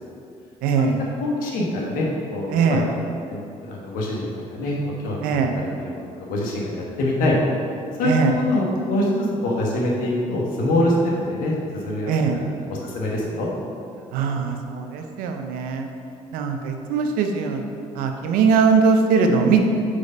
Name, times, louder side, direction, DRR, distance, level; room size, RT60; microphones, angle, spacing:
voice 1, 0.6-1.0 2.5-2.9 5.2-5.5 8.0-8.3 12.1-12.4 14.1-15.9 16.3-17.6 18.0-19.7, right 5 dB, 85° right, 5 dB, 0.6 m, -20 dB
voice 2, 1.2-2.8 3.3-4.8 5.0-7.6 8.0-10.9 11.2-13.5, left 1 dB, 80° left, -2 dB, 1.4 m, -25 dB
5.0 x 4.8 x 5.3 m, 2.5 s
supercardioid pair, 80°, 14 cm